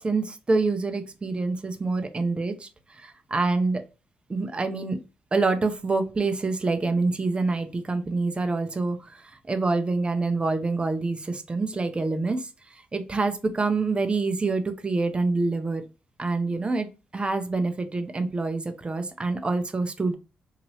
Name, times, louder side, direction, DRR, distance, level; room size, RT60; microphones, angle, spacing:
voice 1, 0.0-3.8 4.3-5.0 5.3-15.8 16.2-16.9 17.1-20.2, right 3 dB, 30° right, 7 dB, 0.5 m, -26 dB
2.8 x 2.6 x 3.0 m, 0.31 s
supercardioid pair, 55°, 4 cm